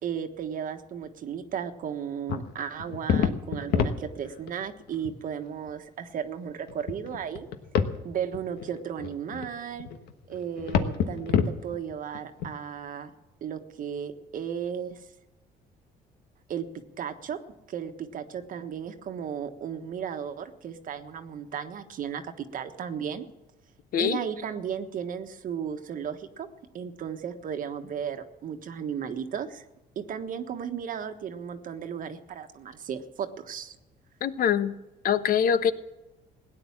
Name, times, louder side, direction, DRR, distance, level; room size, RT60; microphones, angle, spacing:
voice 1, 0.0-7.5 8.0-9.9 10.3-13.1 13.4-15.0 16.5-16.6 17.0-17.4 17.7-23.3 24.0-26.5 26.7-29.6 29.9-33.8, right 8 dB, 55° right, 7 dB, 1.3 m, -35 dB
sound 1, 2.3-4.6 4.9-5.1 5.7-5.8 6.5-8.0 8.3-12.5, left 7 dB, 80° left, 1.3 m, -28 dB
voice 2, 34.2-34.7 35.0-35.7, left 8 dB, 60° left, 13 dB, 0.9 m, -23 dB
17.0 x 9.9 x 7.3 m, 1.0 s
cardioid pair, 110°, 17 cm